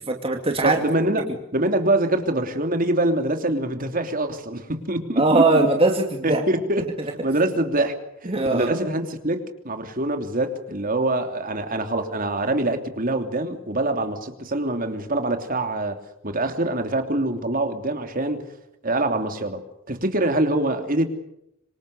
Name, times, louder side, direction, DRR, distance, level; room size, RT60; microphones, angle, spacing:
voice 1, 0.1-0.8 5.2-6.4 8.3-8.7, right 2 dB, 30° right, 3 dB, 2.5 m, -20 dB
voice 2, 0.6-5.7 6.2-6.9 7.2-7.9 8.2-16.0 16.2-18.4 18.8-19.6 19.9-21.1, right 1 dB, 45° right, 6 dB, 3.1 m, -24 dB
26.5 x 26.0 x 6.8 m, 0.80 s
head